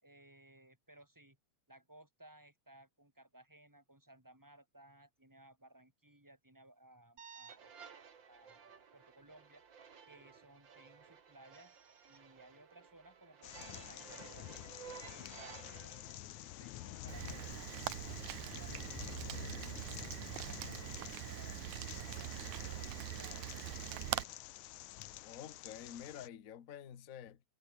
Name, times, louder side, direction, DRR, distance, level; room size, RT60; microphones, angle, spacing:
voice 1, 0.0-1.4 1.7-7.7 8.3-9.6 10.1-11.8 12.0-14.6 15.0-16.0 16.6-19.5 19.9-24.4, right 1 dB, 5° right, 5.4 m, -61 dB
sound 1, 7.2-17.5, right 6 dB, 45° right, 2.5 m, -55 dB
sound 2, 13.4-26.3, left 15 dB, 90° left, 2.3 m, -49 dB
Rain, 17.1-24.2, right 17 dB, 80° right, 2.1 m, -43 dB
voice 2, 25.2-27.4, left 9 dB, 55° left, 0.9 m, -49 dB
omnidirectional pair, 3.4 m